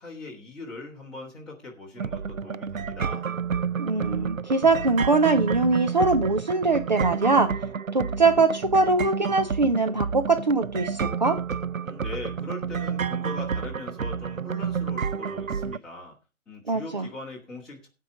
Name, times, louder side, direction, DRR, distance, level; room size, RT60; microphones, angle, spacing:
voice 1, 0.0-3.3 11.8-16.1 16.5-17.9, left 2 dB, ahead, -7 dB, 1.8 m, -40 dB
sound 1, 2.0-15.8, right 6 dB, 75° right, 0.7 m, -30 dB
voice 2, 3.8-11.4 16.7-17.1, right 3 dB, 35° right, 6 dB, 0.8 m, -22 dB
16.0 x 5.7 x 5.1 m, 0.30 s
figure-of-eight pair, 155°, 41 cm